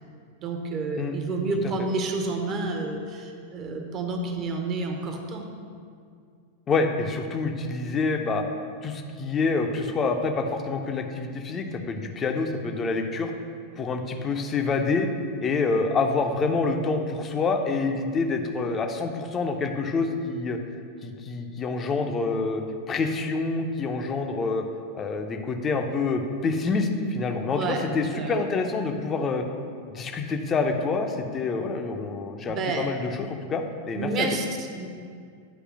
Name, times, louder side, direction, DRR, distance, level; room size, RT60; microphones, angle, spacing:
voice 1, 0.4-5.4 27.5-27.8 28.1-28.4 32.5-32.9 33.9-34.9, right 3 dB, 35° right, 3 dB, 0.9 m, -29 dB
voice 2, 6.7-8.4 8.8-13.3 13.8-15.1 15.4-20.6 21.0-24.6 24.9-29.4 29.9-34.3, left 4 dB, 25° left, 5 dB, 0.6 m, -27 dB
9.3 x 3.3 x 6.1 m, 2.2 s
figure-of-eight pair, 90°, 0 cm